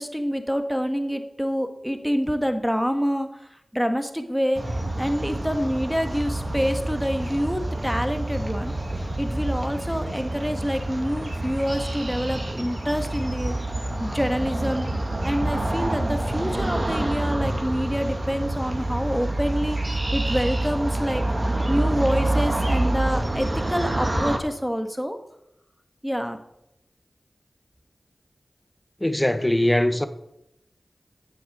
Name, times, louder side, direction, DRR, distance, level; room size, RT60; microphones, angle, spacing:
voice 1, 0.0-3.3 3.7-8.7 9.2-13.5 14.0-14.9 15.2-21.2 21.7-25.2 26.0-26.4, equal, ahead, 1.6 m, -27 dB
sound 1, 4.5-24.4, right 1 dB, 45° right, 2.1 m, -27 dB
voice 2, 29.0-30.1, left 1 dB, 20° left, 1.0 m, -21 dB
9.3 x 7.9 x 7.9 m
cardioid pair, 45°, 0 cm